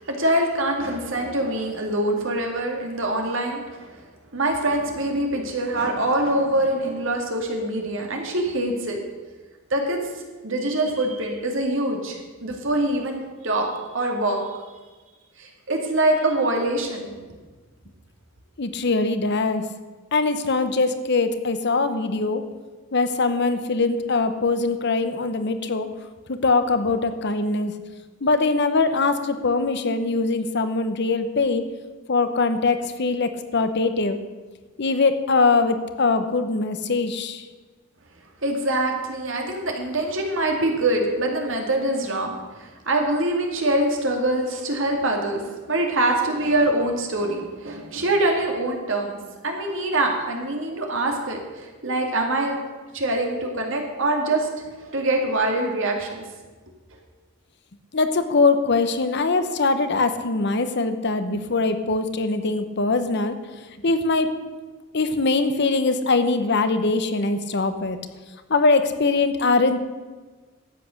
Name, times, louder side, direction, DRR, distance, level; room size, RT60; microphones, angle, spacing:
voice 1, 0.0-4.0 4.3-9.0 9.7-13.7 13.9-14.6 15.4-17.1 38.4-45.4 45.7-49.2 49.4-52.6 52.9-54.5 54.8-56.2, right 1 dB, 60° right, 2 dB, 2.3 m, -24 dB
voice 2, 18.6-19.6 20.1-22.4 22.9-25.9 26.3-27.7 28.2-31.7 32.1-34.2 34.8-37.4 57.9-63.4 63.8-64.3 64.9-68.0 68.5-69.8, left 3 dB, 55° left, 10 dB, 0.9 m, -22 dB
13.0 x 8.4 x 6.4 m, 1.3 s
head